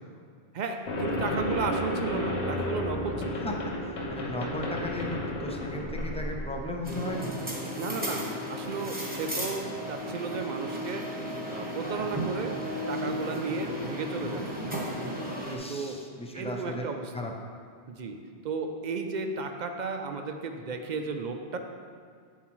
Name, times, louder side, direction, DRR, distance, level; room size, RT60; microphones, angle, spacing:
voice 1, 0.5-3.4 7.8-11.1 11.5-12.5 12.9-14.5 15.7-16.0 16.3-17.3 17.9-18.2 18.4-21.6, right 4 dB, 55° right, 5 dB, 0.5 m, -34 dB
sound 1, 0.9-6.9, left 1 dB, 85° left, 1.1 m, -32 dB
voice 2, 4.1-7.3 15.4-16.8 17.1-17.3, left 1 dB, 10° left, 1 dB, 0.4 m, -35 dB
sound 2, 6.8-15.6, equal, 10° right, 1.0 m, -34 dB
7.4 x 7.3 x 3.1 m, 2.1 s
omnidirectional pair, 1.1 m